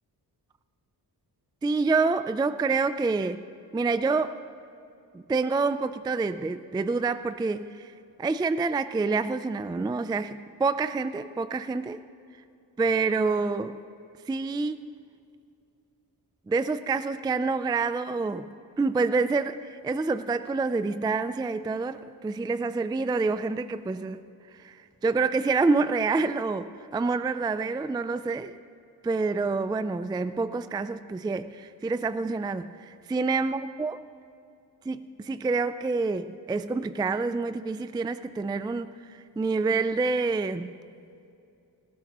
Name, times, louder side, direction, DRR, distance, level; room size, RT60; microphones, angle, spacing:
voice 1, 1.6-3.4 3.7-4.4 5.1-7.9 8.2-12.0 12.8-13.8 14.3-14.8 16.5-18.5 18.8-24.2 24.5-28.6 29.0-34.0 34.9-40.7, right 4 dB, 10° right, 12 dB, 0.3 m, -27 dB
18.5 x 15.5 x 3.0 m, 2.5 s
cardioid pair, 90°, 40 cm